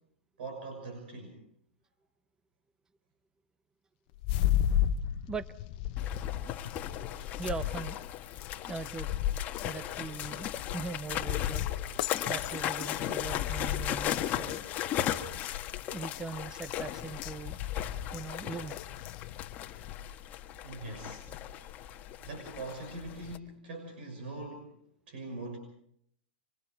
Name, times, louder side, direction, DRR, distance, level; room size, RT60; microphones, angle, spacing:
voice 1, 0.4-1.4 20.6-21.2 22.2-24.8 25.1-25.6, right 2 dB, 65° right, 5 dB, 6.3 m, -42 dB
sound 1, 4.2-20.1, left 11 dB, 45° left, 1.1 m, -35 dB
sound 2, 6.0-23.4, left 11 dB, 30° left, 1.5 m, -37 dB
voice 2, 7.4-8.0 8.7-9.1 9.6-11.7 12.3-14.6 15.9-17.6 18.1-18.8, right 4 dB, 10° right, 15 dB, 0.8 m, -40 dB
26.5 x 25.5 x 4.7 m, 0.68 s
hypercardioid pair, 125°, 6 cm